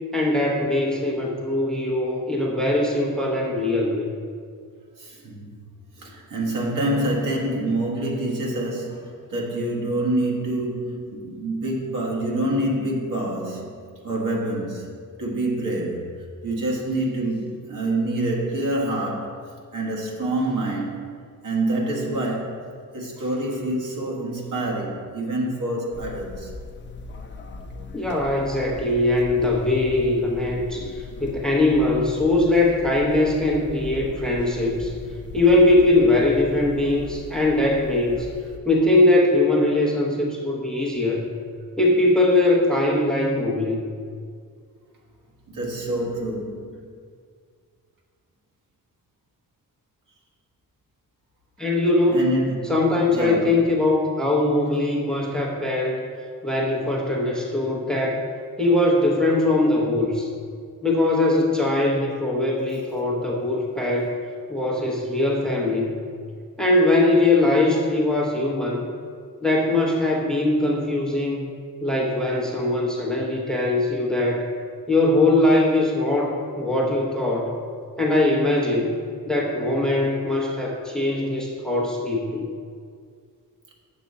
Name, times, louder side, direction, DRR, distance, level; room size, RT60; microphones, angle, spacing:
voice 1, 0.1-4.1 27.9-34.9 35.3-38.3 38.7-41.3 41.8-43.9 51.6-52.2 52.7-56.0 56.4-58.2 58.6-60.3 60.8-64.1 64.5-66.0 66.6-68.8 69.4-71.5 71.8-74.5 74.9-77.5 78.0-78.9 79.3-82.5, left 2 dB, ahead, -2 dB, 0.8 m, -21 dB
voice 2, 5.0-5.5 6.0-16.1 16.4-21.0 21.4-22.6 22.9-26.5 45.5-46.8 52.1-52.7 53.1-53.6, right 1 dB, 65° right, -2 dB, 1.6 m, -26 dB
sound 1, 25.9-38.6, left 3 dB, 35° left, 0.6 m, -39 dB
7.5 x 7.1 x 4.1 m, 2.1 s
wide cardioid pair, 155°, 34 cm